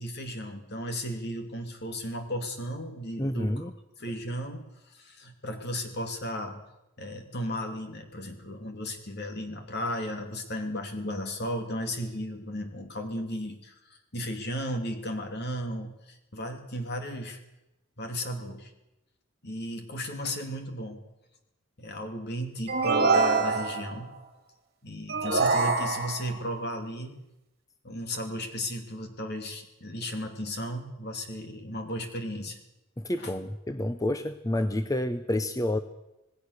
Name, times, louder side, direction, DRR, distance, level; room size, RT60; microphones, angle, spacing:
voice 1, 0.0-3.5 4.0-6.6 7.0-13.8 14.1-17.4 18.0-18.7 19.4-21.0 21.8-24.1 24.8-27.2 27.8-32.6 33.2-33.3, equal, 50° left, 5 dB, 2.8 m, -35 dB
voice 2, 3.2-3.7 33.0-35.8, left 1 dB, 15° left, 10 dB, 0.7 m, -29 dB
sound 1, 22.7-24.0 25.1-26.4, right 4 dB, 50° right, 2.5 m, -25 dB
26.5 x 19.0 x 6.7 m, 0.96 s
head